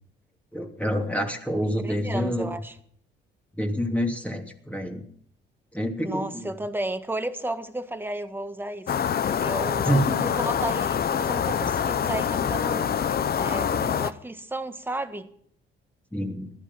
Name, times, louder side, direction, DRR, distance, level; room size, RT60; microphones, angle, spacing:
voice 1, 0.5-2.5 3.6-5.0 5.7-6.5 9.9-10.2 16.1-16.5, equal, 5° left, 3.0 m, -27 dB
voice 2, 1.8-2.8 6.0-8.9 9.2-12.9 13.3-15.3, right 1 dB, 10° right, 1.5 m, -33 dB
sound 1, 8.9-14.1, left 8 dB, 50° left, 0.8 m, -25 dB
17.0 x 13.0 x 5.8 m
cardioid pair, 90°, 20 cm